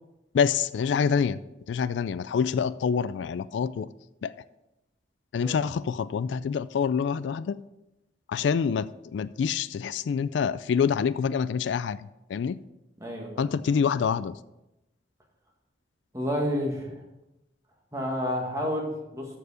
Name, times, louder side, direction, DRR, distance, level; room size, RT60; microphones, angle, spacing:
voice 1, 0.3-1.4 1.7-3.9 4.2-4.3 5.3-7.6 8.3-12.6 13.4-14.4, left 6 dB, 75° left, 17 dB, 0.3 m, -26 dB
voice 2, 13.0-13.5 13.7-13.8 16.1-16.9 17.9-19.3, equal, 15° right, -1 dB, 1.8 m, -30 dB
13.0 x 4.7 x 4.9 m, 0.94 s
head